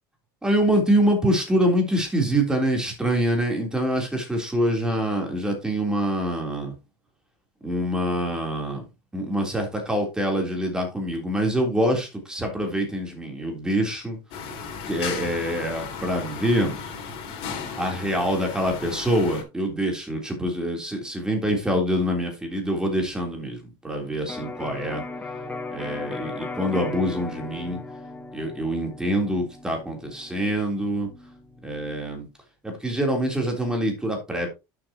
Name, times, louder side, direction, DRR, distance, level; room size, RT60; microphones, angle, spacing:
voice 1, 0.4-6.7 7.6-8.8 9.1-14.2 14.9-16.8 17.8-25.0 25.7-27.8 28.3-31.1 31.6-32.3 32.6-34.5, equal, 5° right, 2 dB, 3.5 m, -25 dB
sound 1, 14.3-19.4, left 6 dB, 50° left, 3.4 m, -35 dB
Electric guitar, 24.3-32.0, left 3 dB, 10° left, 1.2 m, -37 dB
11.5 x 6.9 x 3.0 m, 0.25 s
supercardioid pair, 140°, 12 cm